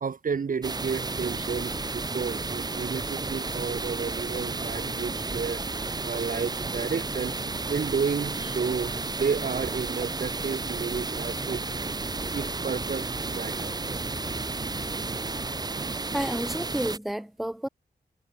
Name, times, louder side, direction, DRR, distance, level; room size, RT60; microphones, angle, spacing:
voice 1, 0.0-5.6 6.0-7.3 7.7-11.6 12.3-13.7, right 5 dB, 55° right, 0.8 m, -31 dB
sound 1, 0.6-17.0, right 3 dB, 25° right, 0.5 m, -32 dB
sound 2, 1.2-15.7, left 3 dB, 35° left, 3.5 m, -45 dB
sound 3, 14.3-14.4 15.6-16.2, right 5 dB, 75° right, 5.9 m, -57 dB
voice 2, 16.1-17.7, equal, ahead, 0.8 m, -30 dB
wide cardioid pair, 75°, 17 cm